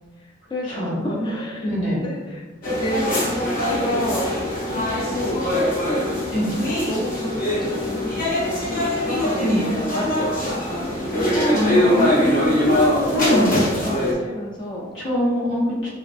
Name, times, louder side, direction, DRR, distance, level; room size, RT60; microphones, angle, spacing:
voice 1, 0.2-3.3 3.6-4.3 4.7-5.5 6.7-14.9, left 1 dB, 25° left, -3 dB, 0.3 m, -30 dB
voice 2, 0.8-1.3 1.6-2.0 6.3-6.5 9.4-9.6 11.5-12.5 13.1-13.6 14.9-15.9, equal, 85° left, -7 dB, 1.2 m, -23 dB
sound 1, 2.6-14.1, left 1 dB, 50° left, 0.7 m, -22 dB
3.2 x 2.3 x 2.5 m, 1.2 s
head